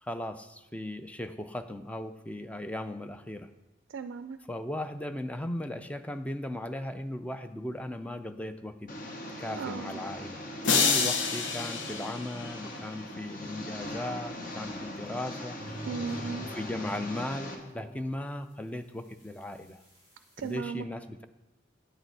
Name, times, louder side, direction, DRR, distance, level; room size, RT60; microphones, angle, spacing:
voice 1, 0.0-3.5 4.5-8.9 9.4-10.5 10.7-15.6 16.5-19.8 20.4-21.3, left 1 dB, 5° left, 9 dB, 0.4 m, -37 dB
voice 2, 3.9-4.4 9.6-10.0 10.8-11.2 15.9-16.5 20.4-20.9, right 5 dB, 85° right, 10 dB, 0.4 m, -36 dB
Engine, 8.9-17.5, left 1 dB, 45° left, 1.1 m, -40 dB
sound 1, 10.6-12.9, left 5 dB, 75° left, 0.8 m, -28 dB
sound 2, 15.6-20.5, right 1 dB, 30° left, 3.2 m, -46 dB
8.9 x 6.6 x 4.6 m, 1.0 s
head